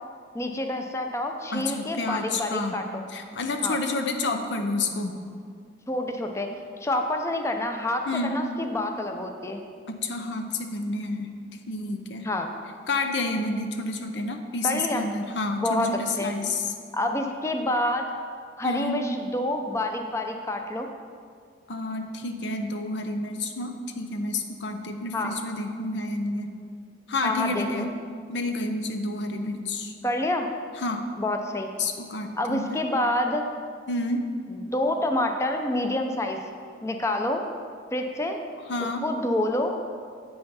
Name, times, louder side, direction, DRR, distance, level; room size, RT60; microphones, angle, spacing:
voice 1, 0.3-3.0 3.6-3.8 5.9-6.5 6.8-9.6 12.2-12.5 14.6-15.1 15.6-15.9 16.2-16.3 16.9-18.1 18.6-20.9 25.1-25.3 27.2-27.9 30.0-30.5 31.2-31.7 32.4-33.4 34.5-36.4 36.8-37.5 37.9-38.4 39.0-39.8, left 1 dB, 15° left, 4 dB, 0.5 m, -27 dB
voice 2, 1.5-2.7 3.1-5.2 8.1-8.3 9.9-11.3 11.7-12.3 12.9-16.6 18.6-19.0 21.7-26.5 27.1-27.9 28.3-29.9 30.8-31.0 31.8-32.8 33.9-34.3 38.7-39.0, left 2 dB, 85° left, 5 dB, 0.7 m, -29 dB
7.9 x 5.6 x 5.6 m, 2.1 s
head